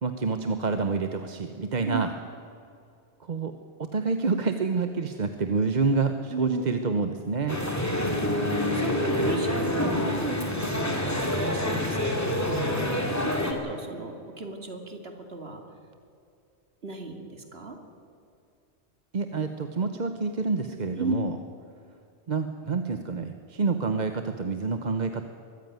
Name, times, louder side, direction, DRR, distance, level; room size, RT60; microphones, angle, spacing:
voice 1, 0.0-2.1 3.2-3.5 3.8-7.6 19.1-21.4 22.3-25.2, right 4 dB, 45° right, 7 dB, 0.9 m, -28 dB
voice 2, 6.3-6.6 7.8-8.4 8.7-15.6 16.8-17.8 21.0-21.2, right 3 dB, 60° right, 4 dB, 2.6 m, -35 dB
sound 1, 7.5-13.5, left 1 dB, 15° left, 2.5 m, -27 dB
22.5 x 14.5 x 9.3 m, 2.5 s
omnidirectional pair, 1.2 m